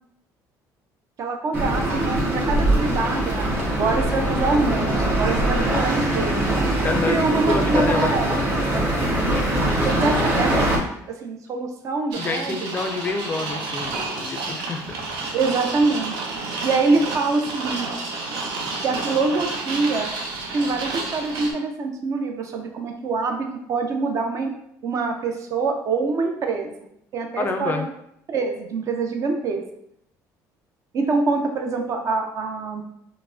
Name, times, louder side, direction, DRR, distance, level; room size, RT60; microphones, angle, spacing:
voice 1, 1.2-6.4 7.1-8.4 9.8-10.7 11.1-12.6 15.3-16.1 16.6-18.0 18.8-20.1 20.5-24.5 24.8-26.7 27.1-27.8 28.3-29.6 30.9-32.8, right 3 dB, 45° right, 4 dB, 0.5 m, -25 dB
sound 1, 1.5-10.8, right 1 dB, 25° right, 1.3 m, -22 dB
voice 2, 6.8-8.2 12.2-15.0 27.4-27.9, left 3 dB, 25° left, 5 dB, 0.3 m, -28 dB
sound 2, 12.1-21.5, right 3 dB, 85° right, 0.6 m, -30 dB
4.5 x 2.1 x 2.5 m, 0.76 s
cardioid pair, 130°, 7 cm